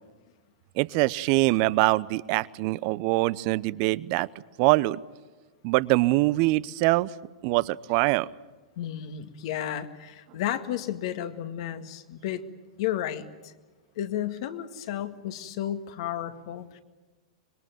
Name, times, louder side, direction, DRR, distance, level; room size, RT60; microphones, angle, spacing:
voice 1, 0.8-4.3 4.6-5.0 5.6-7.1 7.4-8.3, right 20 dB, 45° right, 19 dB, 0.8 m, -23 dB
voice 2, 8.8-12.4 12.8-13.5 14.0-16.8, left 11 dB, 55° left, 8 dB, 2.0 m, -32 dB
25.5 x 22.0 x 9.3 m, 1.2 s
hypercardioid pair, 110°, 3 cm